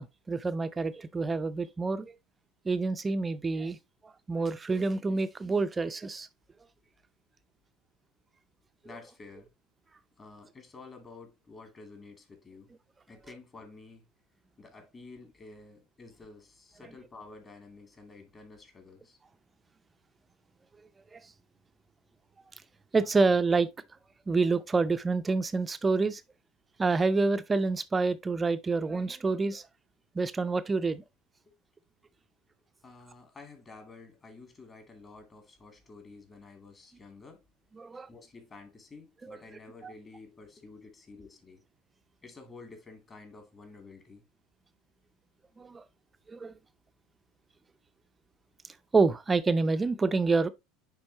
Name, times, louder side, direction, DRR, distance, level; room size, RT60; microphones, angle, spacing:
voice 1, 0.0-2.1 2.6-3.8 4.0-6.3 21.1-21.2 22.9-23.7 24.3-26.2 26.8-29.6 30.1-31.0 37.8-38.1 39.2-39.4 39.8-39.9 45.6-45.8 46.3-46.5 48.9-50.5, right 3 dB, 20° right, 0.5 m, -27 dB
voice 2, 8.8-9.5 10.2-12.7 13.1-14.1 14.6-19.2 31.5-31.6 32.8-37.4 38.1-41.6 42.2-44.3, left 3 dB, 30° left, 2.4 m, -50 dB
9.7 x 3.7 x 2.8 m
hypercardioid pair, 75°, 0 cm